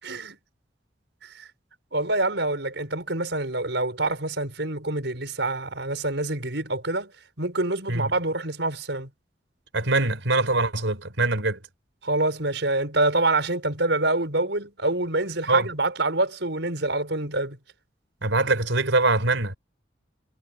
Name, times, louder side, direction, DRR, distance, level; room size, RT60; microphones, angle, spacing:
voice 1, 0.0-0.4 1.2-1.5 1.9-7.1 7.4-9.1 12.0-17.6, right 2 dB, 70° right, 5.3 m, -26 dB
voice 2, 9.7-11.6 15.5-15.7 18.2-19.6, right 2 dB, 90° right, 4.6 m, -23 dB
head